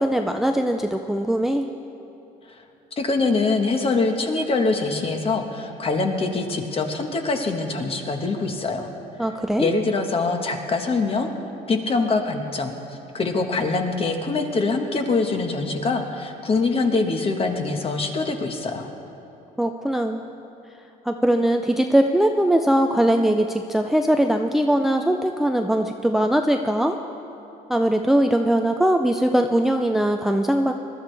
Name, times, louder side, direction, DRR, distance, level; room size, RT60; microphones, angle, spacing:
voice 1, 0.0-1.7 9.2-9.7 19.6-20.3 21.0-27.0 27.7-30.7, right 1 dB, ahead, 5 dB, 0.4 m, -21 dB
voice 2, 3.0-8.9 9.6-11.3 11.7-12.8 13.1-18.9, left 3 dB, 35° left, 4 dB, 1.3 m, -24 dB
21.0 x 12.5 x 3.4 m, 2.9 s
cardioid pair, 110°, 17 cm